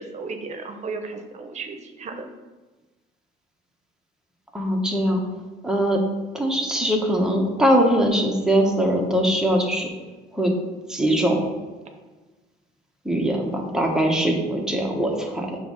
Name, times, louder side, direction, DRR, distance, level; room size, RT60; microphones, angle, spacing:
voice 1, 0.0-2.3, right 4 dB, 40° right, 5 dB, 0.9 m, -34 dB
voice 2, 4.5-5.2 5.6-6.0 6.3-9.9 10.3-10.5 10.9-11.5 13.0-15.6, equal, 5° right, 0 dB, 1.2 m, -21 dB
6.9 x 3.1 x 5.5 m, 1.2 s
cardioid pair, 110°, 17 cm